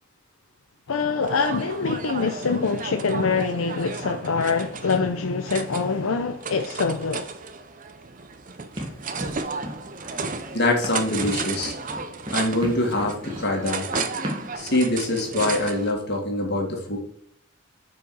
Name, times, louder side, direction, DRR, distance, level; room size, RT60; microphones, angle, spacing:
voice 1, 0.9-7.3, left 4 dB, 80° left, 0.6 m, -25 dB
sound 1, 1.2-15.9, right 4 dB, 40° right, 0.6 m, -34 dB
Run, 8.8-14.6, equal, 25° right, 1.5 m, -36 dB
voice 2, 10.5-11.7 12.3-13.9 14.6-17.0, left 2 dB, 50° left, 1.9 m, -24 dB
6.4 x 5.0 x 4.7 m
head